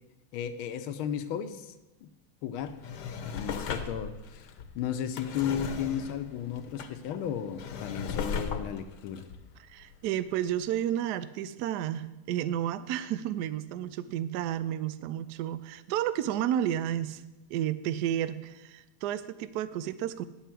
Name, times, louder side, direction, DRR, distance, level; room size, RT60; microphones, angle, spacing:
voice 1, 0.3-1.7 2.0-2.1 2.4-2.8 3.3-9.3, left 8 dB, 80° left, 10 dB, 1.5 m, -34 dB
Drawer open or close, 2.6-10.3 10.8-10.9, left 6 dB, 60° left, 1.2 m, -38 dB
voice 2, 9.6-17.2 17.5-20.2, right 11 dB, 85° right, 14 dB, 0.8 m, -31 dB
9.6 x 5.7 x 7.5 m, 1.0 s
omnidirectional pair, 2.3 m